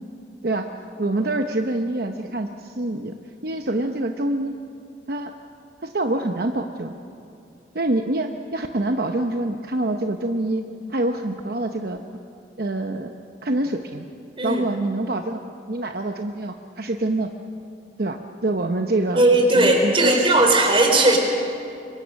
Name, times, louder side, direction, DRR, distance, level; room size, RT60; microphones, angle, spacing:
voice 1, 1.0-3.2 3.4-4.5 5.1-5.3 5.8-6.9 7.7-10.6 10.9-12.0 12.6-13.1 13.4-14.1 14.4-15.4 15.7-17.3 18.0-20.2, right 2 dB, 55° right, 5 dB, 0.9 m, -25 dB
voice 2, 19.2-21.2, right 2 dB, 30° right, 2 dB, 3.6 m, -17 dB
25.5 x 23.0 x 6.5 m, 2.6 s
head